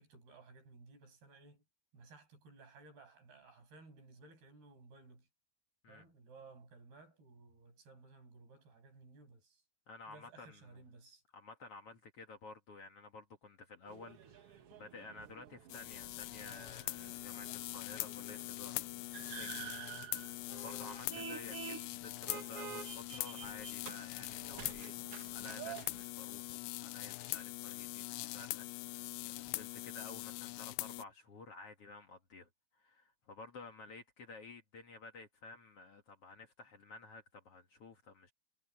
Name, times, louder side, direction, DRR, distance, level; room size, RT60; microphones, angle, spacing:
voice 1, 0.0-1.6 1.9-5.3 5.9-9.6 10.1-11.2, right 3 dB, 85° right, 9.0 m, -58 dB
voice 2, 9.9-10.6 11.3-38.3, left 3 dB, 50° left, 2.2 m, -53 dB
sound 1, 13.9-26.0, right 9 dB, 60° right, 1.5 m, -50 dB
sound 2, 15.7-31.0, left 20 dB, 80° left, 2.4 m, -43 dB
omnidirectional pair, 4.4 m